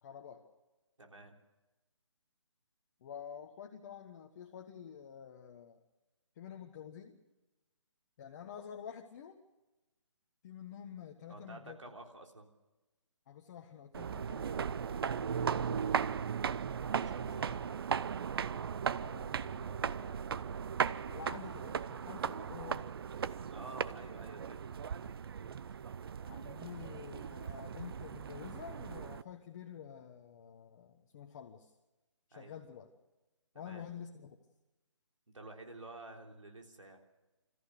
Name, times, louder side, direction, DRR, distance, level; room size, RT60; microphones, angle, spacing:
voice 1, 0.0-0.4 3.0-5.8 6.3-7.2 8.2-9.4 10.4-11.8 13.3-15.3 15.6-16.3 18.9-20.4 21.0-22.9 26.2-31.7 32.3-32.9 33.5-34.4, left 8 dB, 35° left, 3 dB, 1.4 m, -49 dB
voice 2, 1.0-1.4 11.3-12.5 16.7-18.1 23.5-24.8 32.3-32.5 33.5-33.9 35.3-37.0, right 2 dB, 85° right, 2 dB, 3.5 m, -51 dB
sound 1, 13.9-29.2, right 7 dB, 50° right, 0.6 m, -37 dB
27.0 x 14.5 x 6.7 m, 1.1 s
figure-of-eight pair, 150°, 16 cm